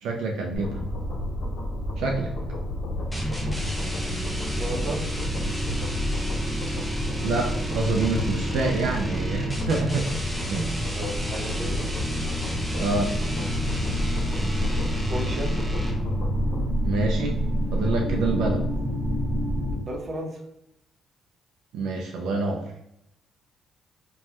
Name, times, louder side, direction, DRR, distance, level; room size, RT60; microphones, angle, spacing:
voice 1, 0.0-0.8 2.0-2.3 7.2-10.1 10.5-10.7 12.8-13.1 16.8-17.4 17.7-18.6 21.7-22.7, right 3 dB, 85° right, 0 dB, 0.4 m, -26 dB
sound 1, 0.5-16.7, left 1 dB, 60° left, 0.7 m, -31 dB
sound 2, 3.1-16.2, equal, ahead, 0.6 m, -32 dB
voice 2, 4.6-5.0 10.9-11.9 15.1-15.5 17.7-17.9 19.7-20.4, right 1 dB, 45° right, 0 dB, 0.8 m, -34 dB
sound 3, 11.6-19.8, equal, 25° left, 1.0 m, -28 dB
3.1 x 2.2 x 2.8 m, 0.81 s
cardioid pair, 90°, 0 cm